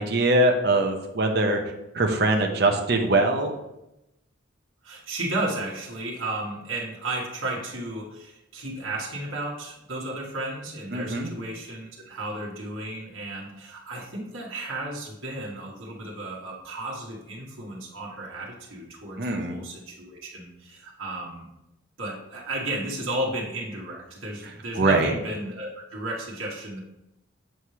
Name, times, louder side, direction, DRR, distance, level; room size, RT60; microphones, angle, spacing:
voice 1, 0.0-1.6 1.9-3.5 10.9-11.3 19.2-19.6 24.8-25.1, right 2 dB, 55° right, 3 dB, 0.9 m, -22 dB
voice 2, 4.8-21.5 22.0-26.8, right 1 dB, 85° right, -3 dB, 1.5 m, -33 dB
7.7 x 3.3 x 5.7 m, 0.89 s
head